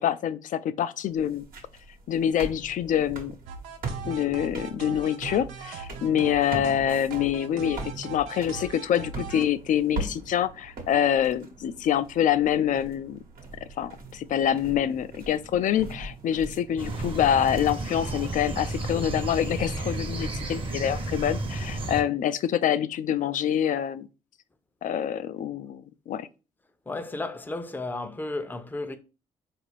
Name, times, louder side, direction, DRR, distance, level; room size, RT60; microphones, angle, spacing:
voice 1, 0.0-1.4 2.1-3.3 4.0-13.2 13.8-24.1 24.8-26.3, left 10 dB, 55° left, 0.4 m, -26 dB
sound 1, 1.1-19.5, right 3 dB, 65° right, 1.1 m, -41 dB
sound 2, 3.5-9.4, right 6 dB, 85° right, 0.5 m, -40 dB
sound 3, 16.8-22.0, right 2 dB, 35° right, 0.9 m, -32 dB
voice 2, 26.9-29.0, left 2 dB, 10° left, 0.6 m, -33 dB
4.3 x 2.5 x 3.3 m
hypercardioid pair, 50°, 16 cm